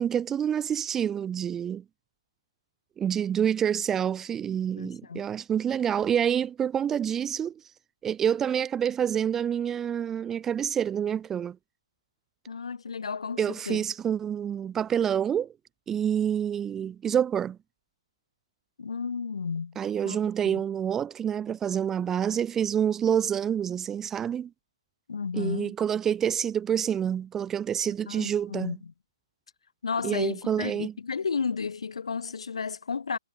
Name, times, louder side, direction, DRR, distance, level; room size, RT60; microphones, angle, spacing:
voice 1, 0.0-1.8 3.0-7.6 8.0-11.6 13.4-15.5 15.9-17.6 19.8-24.5 25.3-28.7 30.0-30.9, right 9 dB, 10° right, 0.4 m, -27 dB
voice 2, 4.8-5.2 12.5-13.8 18.8-19.8 20.0-20.2 20.4-20.6 25.1-25.7 28.1-28.9 29.8-33.2, left 5 dB, 75° left, 3.0 m, -33 dB
hypercardioid pair, 150°, 3 cm